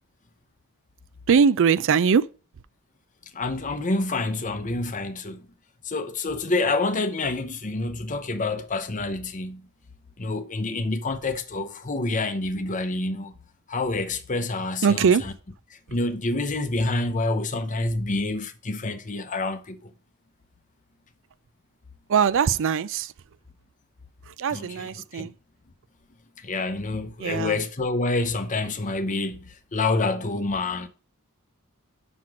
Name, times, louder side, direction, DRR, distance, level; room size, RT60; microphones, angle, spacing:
voice 1, 1.3-2.3 14.8-15.3 22.1-23.1 24.3-25.3 27.2-27.6, right 6 dB, 60° right, 0.4 m, -21 dB
voice 2, 3.3-5.5 5.8-9.7 10.2-13.4 13.7-15.1 15.9-19.8 24.5-24.9 25.1-25.3 26.4-30.9, left 2 dB, 35° left, 0.8 m, -27 dB
6.0 x 5.9 x 4.8 m
head